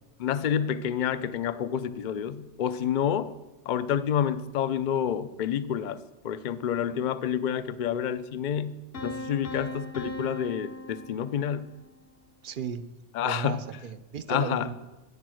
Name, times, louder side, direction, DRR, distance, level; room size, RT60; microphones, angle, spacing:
voice 1, 0.2-3.3 3.7-11.7 13.1-13.6 14.3-14.7, left 9 dB, 50° left, 14 dB, 0.6 m, -29 dB
Piano, 8.9-11.8, left 2 dB, 90° left, 2.2 m, -38 dB
voice 2, 12.4-12.8 13.2-14.7, right 6 dB, 50° right, 12 dB, 0.7 m, -35 dB
12.5 x 9.8 x 6.3 m, 1.1 s
omnidirectional pair, 1.2 m